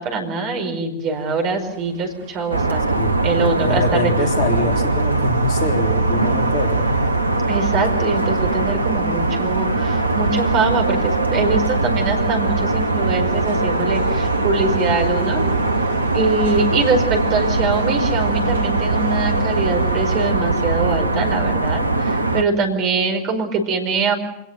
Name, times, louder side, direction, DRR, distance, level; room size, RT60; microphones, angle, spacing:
voice 1, 0.0-2.9 3.2-4.1 7.5-15.4 16.1-24.1, right 3 dB, 35° right, 5 dB, 4.8 m, -23 dB
sound 1, 1.3-20.3, right 1 dB, 70° right, 2.6 m, -35 dB
sound 2, 2.5-22.4, right 3 dB, 85° right, 1.1 m, -21 dB
voice 2, 3.6-6.9, left 2 dB, 40° left, 5 dB, 3.6 m, -24 dB
27.0 x 18.5 x 8.1 m, 0.90 s
figure-of-eight pair, 90°, 0 cm